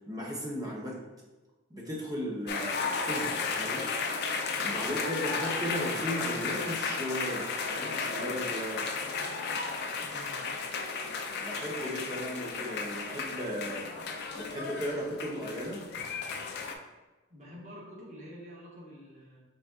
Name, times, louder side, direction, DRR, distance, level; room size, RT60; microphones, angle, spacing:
voice 1, 0.1-1.0 1.7-3.9 4.6-8.9 11.4-13.9 14.3-15.8, equal, 15° right, -2 dB, 0.8 m, -36 dB
sound 1, 2.5-16.7, left 4 dB, 50° left, 0.4 m, -34 dB
voice 2, 4.7-5.4 10.0-10.4 17.3-19.4, equal, 35° right, -5 dB, 1.2 m, -48 dB
4.1 x 3.4 x 3.5 m, 1.2 s
head